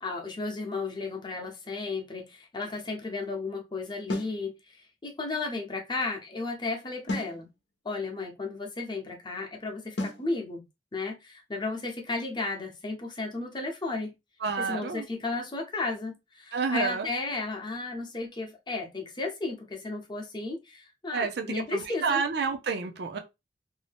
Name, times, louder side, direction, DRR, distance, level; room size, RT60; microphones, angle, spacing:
voice 1, 0.0-4.8 5.0-7.5 7.8-10.6 10.9-14.1 14.6-22.2, left 3 dB, 25° left, 0.7 m, -34 dB
sound 1, 4.1-4.4 7.1-7.4 10.0-10.3, left 1 dB, 75° left, 0.7 m, -32 dB
voice 2, 14.4-15.1 16.5-17.1 21.1-23.2, right 5 dB, 65° right, 0.5 m, -29 dB
2.7 x 2.2 x 3.3 m
head